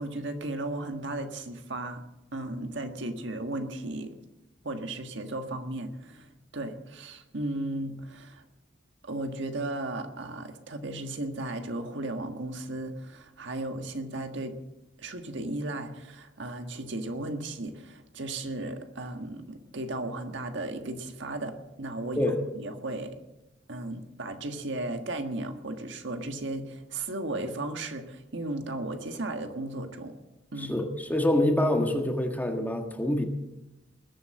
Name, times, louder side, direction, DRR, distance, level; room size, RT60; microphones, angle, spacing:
voice 1, 0.0-2.0 2.3-4.1 4.6-6.3 6.5-8.4 9.0-14.6 15.0-23.2 23.7-30.1 30.5-30.7, right 2 dB, 65° right, 6 dB, 1.6 m, -35 dB
voice 2, 30.5-33.3, left 1 dB, 10° left, 4 dB, 1.6 m, -26 dB
20.5 x 8.0 x 7.6 m, 0.95 s
head